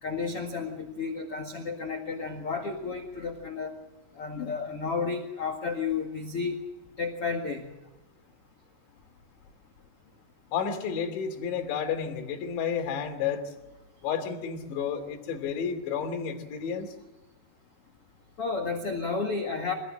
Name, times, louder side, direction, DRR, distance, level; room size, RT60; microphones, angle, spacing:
voice 1, 0.0-3.7 4.1-6.6 7.0-7.7 18.4-19.7, left 4 dB, 85° left, 3 dB, 1.2 m, -32 dB
voice 2, 10.5-13.5 14.0-16.9, left 7 dB, 65° left, 3 dB, 4.8 m, -31 dB
26.0 x 16.5 x 7.5 m, 1.1 s
omnidirectional pair, 5.9 m